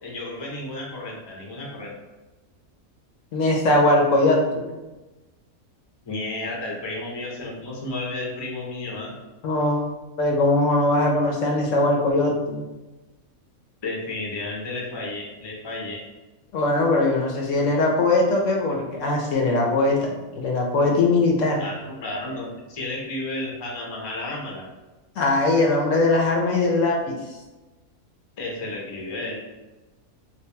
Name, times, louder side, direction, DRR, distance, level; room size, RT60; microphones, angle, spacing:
voice 1, 0.0-1.9 6.1-9.1 13.8-16.0 21.6-24.6 28.4-29.4, left 2 dB, 30° left, -2 dB, 0.5 m, -32 dB
voice 2, 3.3-4.8 9.4-9.8 10.2-12.6 16.5-21.6 25.2-27.2, left 2 dB, 70° left, 0 dB, 0.9 m, -21 dB
3.3 x 2.6 x 3.3 m, 1.1 s
omnidirectional pair, 1.5 m